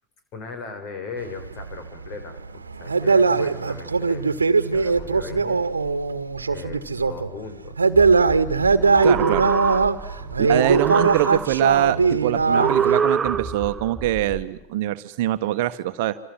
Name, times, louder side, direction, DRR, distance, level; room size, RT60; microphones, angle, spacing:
voice 1, 0.3-4.4 4.7-5.6 6.5-7.9 10.1-10.6 15.6-15.8, left 4 dB, 40° left, 8 dB, 7.4 m, -38 dB
sound 1, 1.2-7.3 7.6-13.0, right 4 dB, 75° right, 1.5 m, -20 dB
sound 2, 4.7-7.3 7.9-12.6 13.2-14.4, right 1 dB, 5° left, 5.3 m, -40 dB
sound 3, 8.8-10.2 10.5-11.8 12.5-13.8, right 6 dB, 15° right, 1.0 m, -25 dB
voice 2, 9.0-9.5 10.4-16.2, right 14 dB, 50° right, 10 dB, 1.4 m, -24 dB
27.5 x 27.0 x 7.5 m, 0.84 s
figure-of-eight pair, 90°, 0 cm